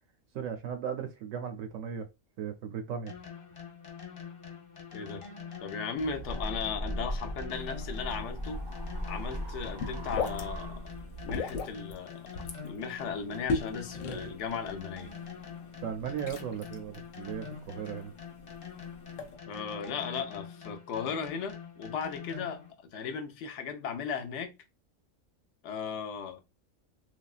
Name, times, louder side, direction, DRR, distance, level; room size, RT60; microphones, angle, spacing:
voice 1, 0.3-2.1 2.4-3.1 15.8-18.1, right 8 dB, 80° right, 0.9 m, -36 dB
sound 1, 3.1-22.7, left 7 dB, 40° left, 0.4 m, -45 dB
voice 2, 4.9-5.2 5.6-8.6 9.0-10.9 11.2-12.3 12.6-15.1 19.5-22.6 22.9-24.5 25.6-26.4, left 6 dB, 70° left, 0.9 m, -36 dB
sound 2, 6.0-11.4, equal, 30° right, 0.5 m, -38 dB
sound 3, 7.5-19.4, left 4 dB, 90° left, 1.0 m, -39 dB
3.4 x 2.3 x 2.3 m
omnidirectional pair, 1.3 m